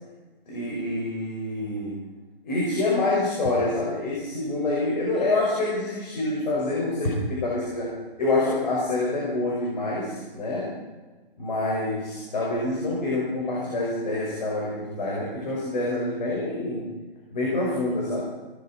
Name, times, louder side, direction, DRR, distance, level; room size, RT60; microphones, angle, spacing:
voice 1, 0.5-2.0 2.4-10.7 11.4-16.8 17.3-18.2, left 2 dB, 50° left, -4 dB, 5.4 m, -26 dB
18.0 x 15.0 x 4.4 m, 1.3 s
hypercardioid pair, 175°, 29 cm